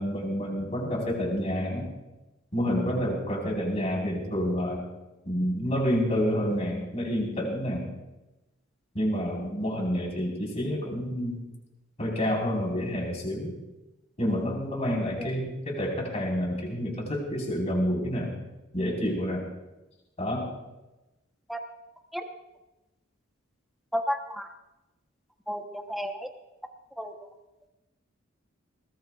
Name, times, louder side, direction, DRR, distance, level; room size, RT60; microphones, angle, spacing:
voice 1, 0.0-1.9 2.5-4.8 5.2-7.9 8.9-11.4 12.0-13.5 14.2-18.3 18.7-19.4 20.2-20.5, equal, 35° left, -2 dB, 4.8 m, -28 dB
voice 2, 23.9-24.5 25.5-26.3 27.0-27.1, equal, ahead, 3 dB, 1.1 m, -32 dB
20.5 x 19.5 x 2.5 m, 1.0 s
head